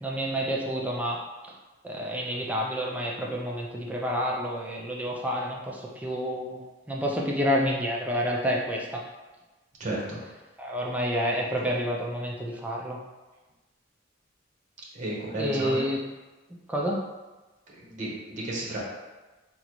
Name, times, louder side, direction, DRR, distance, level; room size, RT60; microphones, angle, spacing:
voice 1, 0.0-1.5 1.8-9.0 10.6-13.0 15.3-16.0 16.7-17.0, equal, 10° right, -2 dB, 0.4 m, -29 dB
voice 2, 9.8-10.2 14.9-15.8 17.9-18.8, right 1 dB, 40° right, -4 dB, 0.7 m, -32 dB
3.7 x 2.0 x 2.9 m, 1.2 s
head